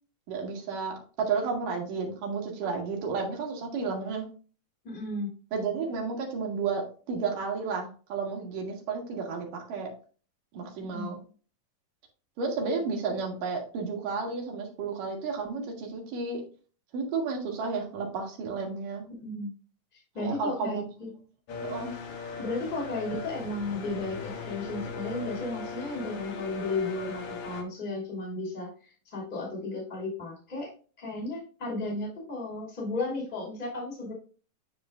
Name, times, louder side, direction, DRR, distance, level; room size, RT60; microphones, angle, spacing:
voice 1, 0.3-4.3 5.5-9.9 10.5-11.2 12.4-16.4 16.9-19.0 20.2-20.8 21.6-21.9, right 4 dB, 75° right, 0 dB, 3.3 m, -32 dB
voice 2, 4.8-5.3 10.9-11.1 19.2-19.5 19.9-21.1 22.4-30.7 31.0-34.1, left 2 dB, 15° left, -3 dB, 2.7 m, -34 dB
sound 1, 21.5-27.6, left 5 dB, 60° left, 1.7 m, -39 dB
10.5 x 4.8 x 2.5 m, 0.39 s
omnidirectional pair, 3.9 m